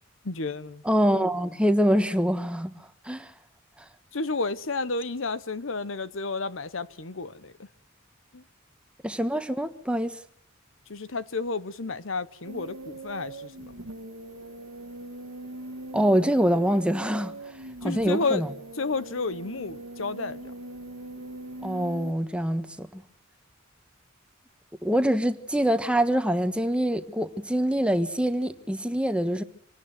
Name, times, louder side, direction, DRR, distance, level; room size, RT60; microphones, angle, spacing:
voice 1, 0.2-0.8 4.1-7.5 8.3-8.4 10.9-13.9 17.8-18.4 18.8-20.4, left 3 dB, 70° left, 1.0 m, -31 dB
voice 2, 0.8-3.3 9.0-10.2 15.9-17.3 17.8-18.5 21.6-23.0 24.8-29.4, equal, 5° right, 1.3 m, -25 dB
sound 1, 12.4-22.1, right 2 dB, 85° right, 1.5 m, -41 dB
25.5 x 18.0 x 7.7 m
head